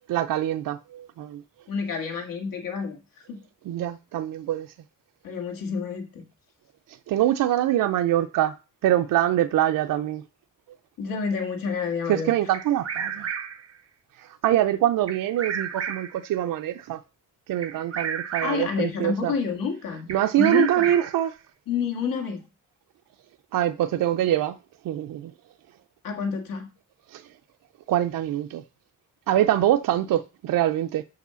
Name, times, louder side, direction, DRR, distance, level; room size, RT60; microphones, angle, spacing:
voice 1, 0.1-1.4 3.7-4.7 7.1-8.5 8.8-10.2 12.1-13.3 14.2-17.0 17.5-19.3 20.1-21.3 23.5-24.6 24.8-25.3 27.1-27.2 27.9-28.6 29.3-31.0, right 12 dB, 80° right, 0.5 m, -24 dB
voice 2, 1.7-3.0 3.3-3.4 5.2-6.2 11.0-12.3 18.4-20.1 20.4-20.9 21.7-22.4 26.0-26.7, left 5 dB, 85° left, 2.0 m, -28 dB
Bird vocalization bird call bird song, 12.5-13.7 15.1-16.3 17.6-18.8 20.1-21.3, right 7 dB, 45° right, 1.0 m, -32 dB
6.2 x 4.9 x 6.8 m
wide cardioid pair, 175°, 33 cm